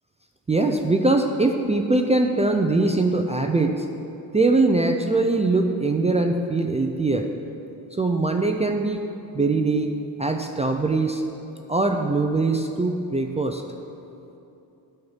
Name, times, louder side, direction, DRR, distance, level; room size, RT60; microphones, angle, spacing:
voice 1, 0.5-3.9 4.3-7.3 7.9-9.1 9.3-11.2 11.7-13.6, right 3 dB, 15° right, 4 dB, 0.5 m, -22 dB
9.6 x 5.8 x 7.2 m, 2.9 s
cardioid pair, 100°, 42 cm